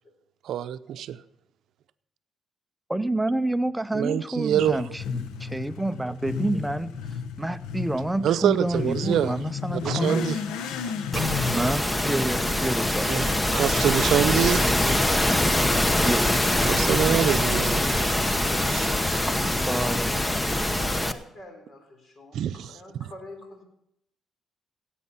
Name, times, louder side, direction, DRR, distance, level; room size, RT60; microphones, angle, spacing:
voice 1, 0.4-1.2 3.9-4.8 8.2-9.3 9.7-10.4 10.8-10.9 13.1-14.9 16.6-17.9 18.4-18.9 22.3-23.1, right 10 dB, 75° right, 13 dB, 0.6 m, -26 dB
voice 2, 2.9-6.9 7.4-10.3 11.5-13.2 16.0-16.4 19.7-20.1, right 1 dB, 10° right, 13 dB, 0.5 m, -28 dB
Motorcycle / Accelerating revving vroom, 4.5-13.4, left 6 dB, 90° left, 1.0 m, -34 dB
sound 1, 11.1-21.1, left 1 dB, 15° left, 0.9 m, -23 dB
voice 3, 20.6-23.6, left 2 dB, 50° left, 4 dB, 3.8 m, -45 dB
16.5 x 8.4 x 5.7 m, 0.78 s
cardioid pair, 90°, 0 cm